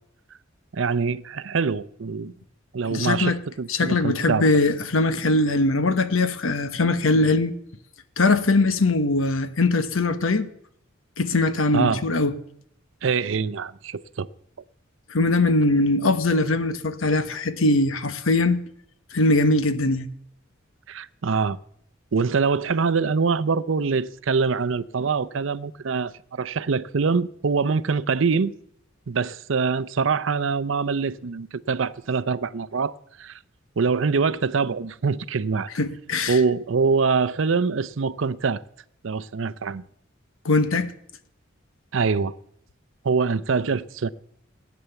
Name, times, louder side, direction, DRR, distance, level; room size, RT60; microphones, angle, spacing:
voice 1, 0.7-2.3 2.7-4.5 11.7-12.0 13.0-14.3 20.9-21.6 22.1-28.5 29.1-33.4 33.8-35.7 36.3-38.6 39.0-39.8 41.9-42.3 43.0-44.1, right 5 dB, 70° right, 0.6 m, -24 dB
voice 2, 2.9-3.4 3.7-7.5 8.2-10.5 11.2-12.3 15.1-18.6 19.1-20.1 35.7-36.4 40.4-40.9, left 2 dB, 90° left, 1.1 m, -21 dB
17.5 x 9.4 x 6.9 m
head